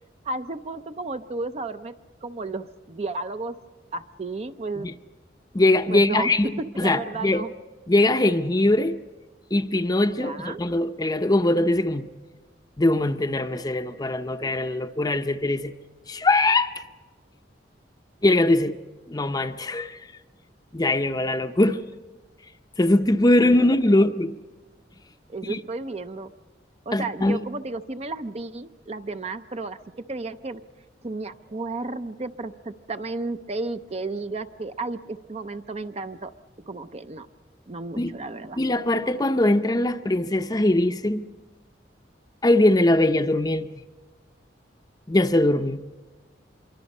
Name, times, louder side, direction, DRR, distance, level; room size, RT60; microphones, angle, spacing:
voice 1, 0.2-1.9 2.2-3.6 3.9-4.9 5.9-6.3 6.6-7.5 10.2-10.6 23.3-23.7 24.0-24.1 25.3-26.3 26.9-30.6 31.0-36.3 36.7-37.3 37.7-38.6, right 3 dB, 35° right, 0.6 m, -33 dB
voice 2, 5.5-6.5 6.8-7.4 7.9-9.0 9.5-12.1 12.8-15.7 16.1-16.7 18.2-18.8 19.1-20.0 20.7-21.8 22.8-24.3 25.4-25.6 26.9-27.4 38.0-38.1 38.6-41.3 42.4-43.7 45.1-45.8, left 1 dB, 20° left, 0.6 m, -21 dB
26.0 x 23.5 x 5.4 m
head